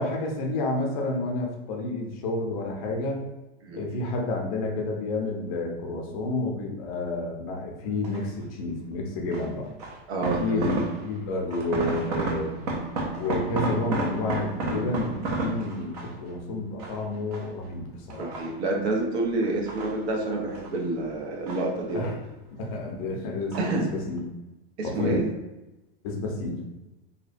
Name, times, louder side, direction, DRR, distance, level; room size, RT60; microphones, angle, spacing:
voice 1, 0.0-3.3 3.7-9.7 10.4-12.6 13.1-18.3 21.9-22.1 22.5-24.2 24.8-25.2 26.0-26.7, left 2 dB, 35° left, 0 dB, 0.5 m, -30 dB
sound 1, 8.0-8.4 9.3-11.2 11.5-16.3 16.8-17.7 18.1-18.9 19.4-20.8 21.0-22.2 22.5-23.1 23.5-23.9 24.2-24.3, right 2 dB, 40° right, 0.4 m, -32 dB
voice 2, 10.1-10.7 18.2-22.2 23.6-23.9 24.8-25.3, right 2 dB, 85° right, 0 dB, 0.7 m, -28 dB
2.7 x 2.1 x 2.5 m, 1.0 s
supercardioid pair, 165°, 32 cm